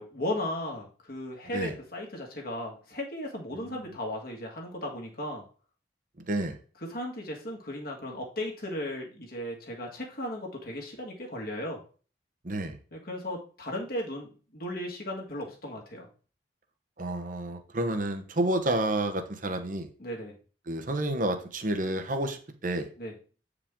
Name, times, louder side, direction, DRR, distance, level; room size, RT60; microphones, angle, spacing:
voice 1, 0.0-5.4 6.8-11.8 12.9-16.1 20.0-20.3 23.0-23.1, left 1 dB, 55° left, 0 dB, 2.0 m, -36 dB
voice 2, 6.3-6.6 12.4-12.8 17.0-19.9 20.7-22.9, right 1 dB, 45° right, 6 dB, 1.0 m, -30 dB
8.5 x 4.9 x 3.7 m, 0.38 s
head